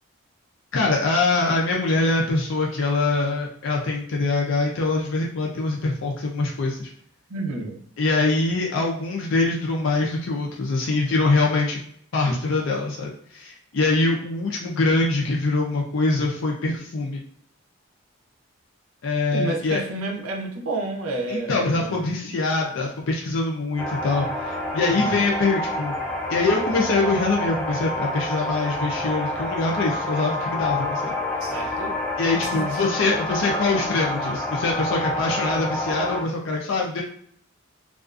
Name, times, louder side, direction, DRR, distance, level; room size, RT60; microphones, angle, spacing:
voice 1, 0.7-6.9 8.0-11.8 12.1-17.2 19.0-19.8 21.3-26.0 26.3-31.1 31.6-31.7 32.2-37.0, left 3 dB, 60° left, -1 dB, 0.4 m, -24 dB
voice 2, 7.3-7.8 19.3-22.1 24.8-25.2 31.4-32.0 32.5-32.8, right 2 dB, 80° right, 2 dB, 0.6 m, -30 dB
sound 1, 23.8-36.2, left 1 dB, 5° left, 0.4 m, -28 dB
2.4 x 2.3 x 2.4 m, 0.66 s
head